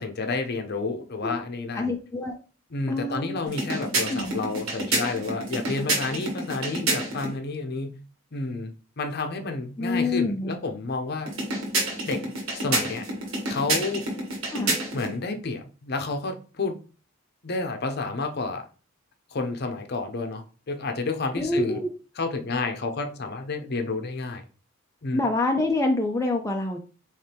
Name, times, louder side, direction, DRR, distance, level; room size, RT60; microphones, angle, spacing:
voice 1, 0.0-1.9 2.7-8.0 8.3-11.3 12.1-12.2 12.5-13.0 13.5-14.0 14.9-16.8 17.4-18.6 19.3-21.8 22.2-24.4 25.0-25.2, left 3 dB, 50° left, 6 dB, 0.7 m, -30 dB
voice 2, 1.7-2.4 2.9-3.4 4.1-4.3 9.8-10.5 14.4-14.8 21.4-21.9 25.1-26.8, left 2 dB, 15° left, 2 dB, 0.4 m, -26 dB
sound 1, 3.5-7.3 11.3-15.2, right 2 dB, 70° right, 1.5 m, -29 dB
4.4 x 3.2 x 3.4 m, 0.37 s
head